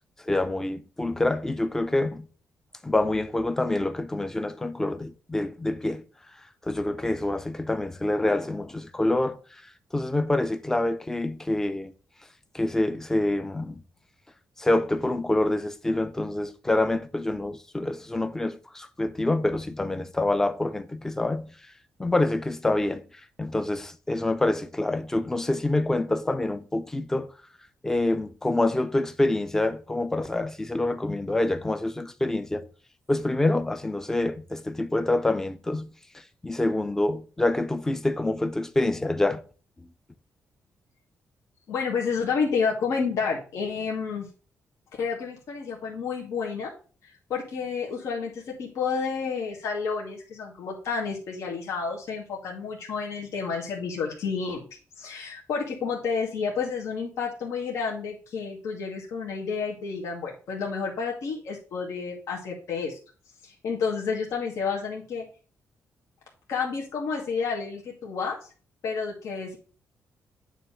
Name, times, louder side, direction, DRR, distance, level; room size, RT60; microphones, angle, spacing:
voice 1, 0.2-2.3 2.8-6.0 6.6-9.4 9.9-11.9 12.5-13.8 14.6-21.5 22.0-23.0 23.4-27.3 27.8-32.7 33.1-35.9 36.4-39.4, left 2 dB, 10° left, 0.5 m, -26 dB
voice 2, 41.7-44.3 45.0-46.7 47.0-54.6 55.0-63.0 63.4-65.2 66.5-68.3 68.8-69.6, left 5 dB, 80° left, 1.7 m, -30 dB
9.3 x 3.1 x 5.5 m
wide cardioid pair, 165°, 5 cm